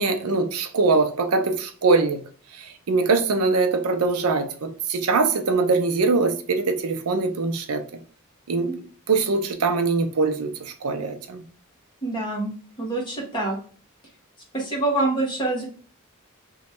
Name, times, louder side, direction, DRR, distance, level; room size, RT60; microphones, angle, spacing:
voice 1, 0.0-2.2 2.6-7.8 8.5-8.7 9.1-10.5 10.8-11.4, right 3 dB, 80° right, 0.6 m, -22 dB
voice 2, 12.0-12.5 12.8-13.6 14.5-15.7, right 2 dB, 20° left, 1.3 m, -25 dB
3.0 x 2.3 x 4.3 m
head